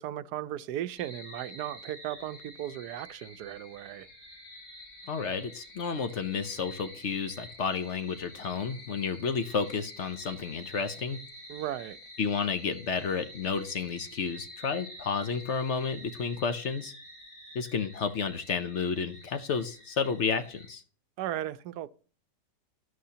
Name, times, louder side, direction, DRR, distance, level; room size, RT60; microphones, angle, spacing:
voice 1, 0.0-4.1 11.5-12.0 21.2-21.9, right 12 dB, 90° right, 1.2 m, -36 dB
sound 1, 1.0-20.7, left 1 dB, 70° left, 7.3 m, -48 dB
voice 2, 5.1-11.2 12.2-16.9 17.5-20.8, left 5 dB, 55° left, 1.0 m, -31 dB
13.0 x 11.5 x 2.8 m
omnidirectional pair, 1.7 m